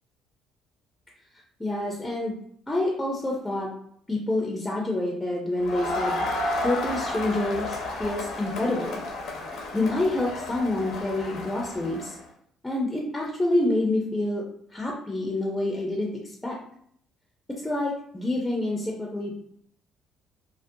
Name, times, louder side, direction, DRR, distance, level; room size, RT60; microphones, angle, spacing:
voice 1, 1.6-2.4 2.7-3.7 4.1-6.2 6.6-9.0 9.7-12.2 12.6-14.4 14.7-16.6 17.5-19.3, left 2 dB, 10° left, -2 dB, 0.4 m, -27 dB
Crowd, 5.6-12.2, left 2 dB, 70° left, 0.5 m, -32 dB
2.4 x 2.0 x 2.6 m, 0.67 s
cardioid pair, 100°, 0 cm